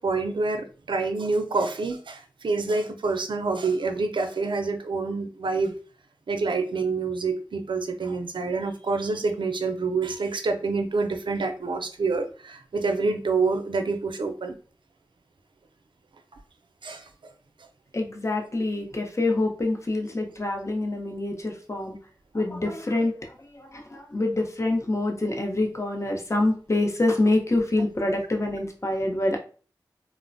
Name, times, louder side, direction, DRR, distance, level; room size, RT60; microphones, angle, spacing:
voice 1, 0.0-5.7 6.3-14.6 16.8-17.0, right 3 dB, 80° right, 6 dB, 0.4 m, -27 dB
voice 2, 17.9-22.0 22.3-29.4, left 2 dB, 35° left, 3 dB, 0.6 m, -26 dB
3.1 x 2.0 x 2.5 m, 0.38 s
cardioid pair, 40°, 8 cm